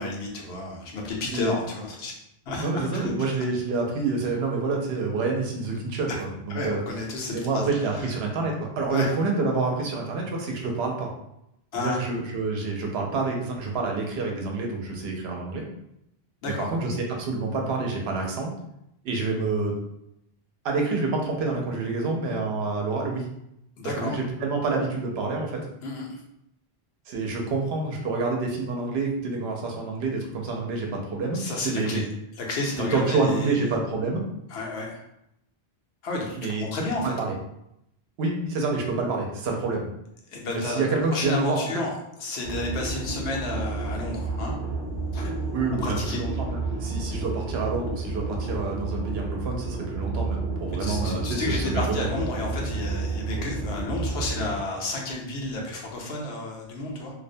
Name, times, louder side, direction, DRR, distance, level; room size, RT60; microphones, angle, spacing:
voice 1, 0.0-2.1 2.5-3.1 6.5-7.7 8.0-8.1 8.9-9.1 11.7-12.0 16.4-16.7 23.8-24.1 25.8-26.2 31.3-32.0 32.4-33.7 34.5-35.0 36.0-37.1 40.3-40.8 41.1-41.9 42.2-44.5 45.1-45.3 45.8-46.2 50.7-57.1, left 2 dB, 80° left, -1 dB, 0.9 m, -31 dB
voice 2, 1.3-1.6 2.6-6.8 7.3-11.1 11.8-15.6 16.4-18.5 19.0-19.7 20.6-23.3 24.0-25.6 27.1-32.0 32.9-34.2 36.3-37.3 38.2-39.9 40.5-41.7 45.5-52.1, right 3 dB, 75° right, 1 dB, 0.8 m, -28 dB
sound 1, 42.4-54.6, right 3 dB, 50° right, 0.8 m, -31 dB
2.4 x 2.1 x 2.6 m, 0.80 s
omnidirectional pair, 1.1 m